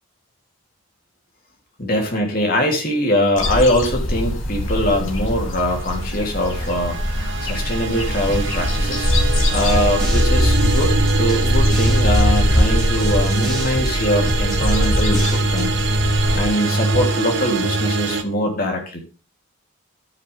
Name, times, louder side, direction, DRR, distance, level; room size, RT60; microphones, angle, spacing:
voice 1, 1.8-9.1 9.5-19.0, left 1 dB, 40° left, 1 dB, 3.3 m, -22 dB
sound 1, 3.4-16.4, left 1 dB, 70° left, 3.1 m, -22 dB
sound 2, 6.0-18.2, right 2 dB, 55° right, 1.3 m, -23 dB
sound 3, 9.1-15.9, equal, ahead, 3.3 m, -29 dB
11.5 x 9.8 x 3.6 m, 0.33 s
head